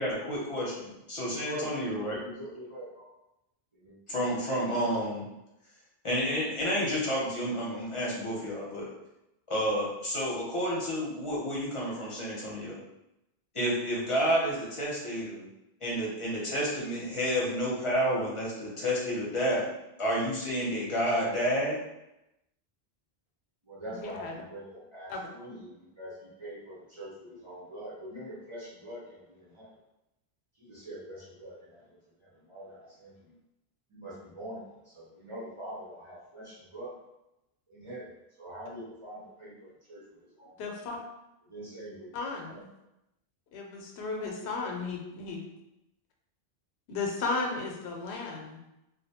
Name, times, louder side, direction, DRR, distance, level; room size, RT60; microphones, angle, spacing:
voice 1, 0.0-2.2 4.1-5.2 6.0-8.9 9.5-12.8 13.5-15.4 15.8-19.6 20.0-21.8, equal, 35° left, -5 dB, 0.7 m, -30 dB
voice 2, 1.3-3.1 3.7-4.0 23.7-29.7 30.6-32.0 32.5-33.3 33.9-36.9 37.7-38.1 38.4-39.5 39.9-40.7 41.5-42.1 42.4-42.6, right 1 dB, 35° right, -8 dB, 0.7 m, -44 dB
voice 3, 23.9-24.3 25.1-25.2 40.6-41.0 42.1-42.7 43.5-45.5 46.9-48.6, left 3 dB, 85° left, 1 dB, 0.8 m, -35 dB
2.4 x 2.2 x 2.7 m, 0.91 s
omnidirectional pair, 1.1 m